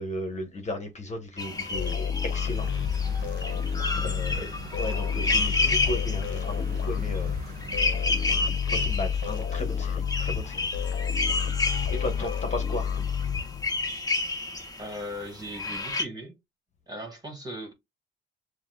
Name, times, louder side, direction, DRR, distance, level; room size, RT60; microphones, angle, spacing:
voice 1, 0.0-2.7 3.7-4.5 4.8-7.4 8.7-10.7 11.9-12.9, left 1 dB, 35° left, 1.4 m, -35 dB
sound 1, 1.4-15.1 15.5-16.1, left 3 dB, 20° left, 1.2 m, -31 dB
sound 2, 1.7-14.0, left 7 dB, 70° left, 0.9 m, -30 dB
sound 3, 2.5-8.5, right 5 dB, 50° right, 0.7 m, -44 dB
voice 2, 14.8-16.4 16.9-17.7, equal, 20° right, 2.1 m, -38 dB
7.1 x 2.4 x 2.4 m
cardioid pair, 90°, 20 cm